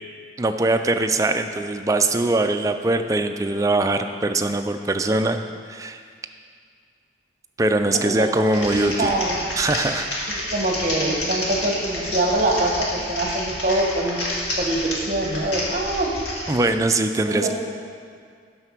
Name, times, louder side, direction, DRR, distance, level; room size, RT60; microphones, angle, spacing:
voice 1, 0.4-5.4 5.7-6.0 7.6-9.1 9.6-10.1 16.5-17.5, right 2 dB, 20° right, 7 dB, 0.3 m, -22 dB
voice 2, 8.0-8.4 9.0-9.4 10.3-14.2 14.6-16.1 17.2-17.5, right 1 dB, 45° right, 0 dB, 1.0 m, -24 dB
Typing, 8.4-16.6, left 1 dB, 85° left, 2.0 m, -29 dB
7.8 x 5.7 x 6.0 m, 2.1 s
head